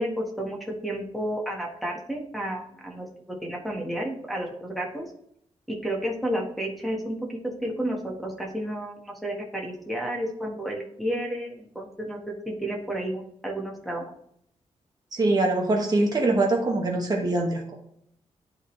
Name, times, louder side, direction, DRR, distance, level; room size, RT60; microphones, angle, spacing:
voice 1, 0.0-5.0 5.7-14.1, right 1 dB, ahead, -2 dB, 1.5 m, -31 dB
voice 2, 15.1-17.7, right 2 dB, 35° right, 0 dB, 1.2 m, -23 dB
11.0 x 3.9 x 3.2 m, 0.70 s
wide cardioid pair, 145°, 12 cm